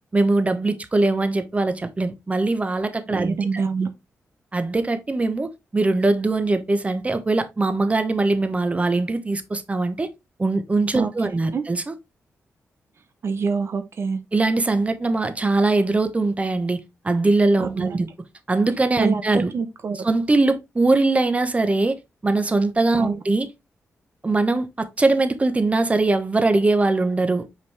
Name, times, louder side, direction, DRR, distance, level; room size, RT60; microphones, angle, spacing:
voice 1, 0.1-3.6 4.5-10.1 10.4-11.9 14.3-16.8 17.0-18.1 18.5-19.5 20.0-22.0 22.2-23.5 24.2-27.5, right 2 dB, 25° right, 1.1 m, -21 dB
voice 2, 3.1-3.9 10.9-11.6 13.2-14.2 17.6-18.0 19.0-20.0 22.9-23.2, right 5 dB, 60° right, 0.8 m, -26 dB
5.8 x 4.8 x 3.4 m
cardioid pair, 70°, 5 cm